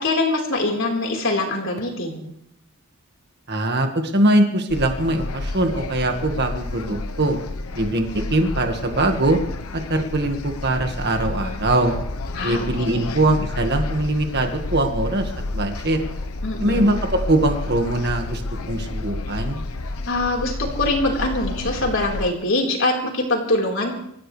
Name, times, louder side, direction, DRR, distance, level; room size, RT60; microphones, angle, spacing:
voice 1, 0.0-2.3 12.3-13.1 16.4-16.9 20.1-23.9, left 2 dB, 60° left, 0 dB, 4.3 m, -23 dB
voice 2, 3.5-7.4 7.7-9.4 9.7-11.9 12.4-16.0 16.6-16.9 17.3-18.4 18.7-19.6, right 1 dB, 50° right, 5 dB, 1.8 m, -22 dB
sound 1, 4.7-22.3, left 2 dB, 80° left, 1.0 m, -30 dB
26.5 x 15.0 x 3.3 m, 0.73 s
head